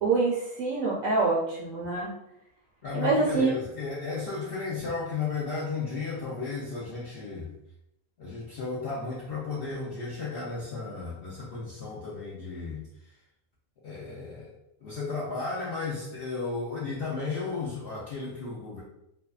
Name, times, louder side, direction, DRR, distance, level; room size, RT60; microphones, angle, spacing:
voice 1, 0.0-2.1 2.9-3.5, right 3 dB, 70° right, -5 dB, 0.9 m, -25 dB
voice 2, 2.8-7.5 8.2-13.1 13.8-14.5 14.8-18.8, left 4 dB, 70° left, -6 dB, 0.5 m, -34 dB
2.7 x 2.2 x 2.3 m, 0.80 s
omnidirectional pair, 1.6 m